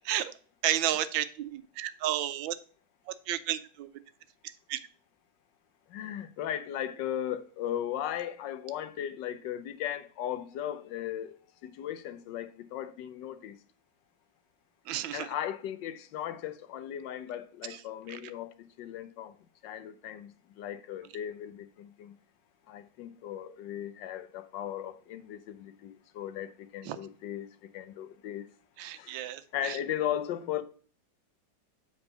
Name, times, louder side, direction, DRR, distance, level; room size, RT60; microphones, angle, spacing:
voice 1, 0.6-2.5 3.3-3.9 4.7-4.8 14.9-15.3 18.1-18.2 26.9-27.0 28.8-29.8, right 12 dB, 85° right, 1.4 m, -32 dB
voice 2, 5.9-13.6 15.1-19.3 19.6-22.1 22.7-27.5 27.7-28.5 29.0-29.2 29.5-30.6, left 10 dB, 75° left, 1.2 m, -37 dB
7.2 x 4.0 x 5.4 m
omnidirectional pair, 2.1 m